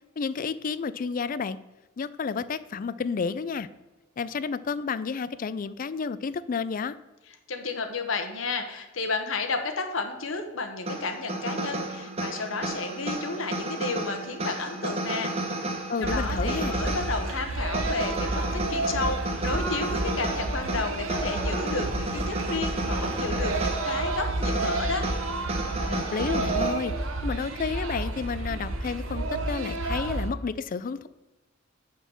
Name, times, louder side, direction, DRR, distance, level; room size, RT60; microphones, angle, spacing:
voice 1, 0.2-1.6 2.0-3.7 4.2-7.0 15.9-16.8 25.9-26.9 27.2-31.1, left 5 dB, 45° left, 16 dB, 0.4 m, -31 dB
voice 2, 7.5-15.3 15.6-25.1, left 3 dB, 80° left, 6 dB, 1.0 m, -32 dB
sound 1, 10.9-26.7, right 2 dB, 30° right, 1.3 m, -32 dB
sound 2, 16.0-30.3, right 2 dB, 80° right, 1.0 m, -31 dB
6.3 x 5.4 x 7.0 m, 1.1 s
head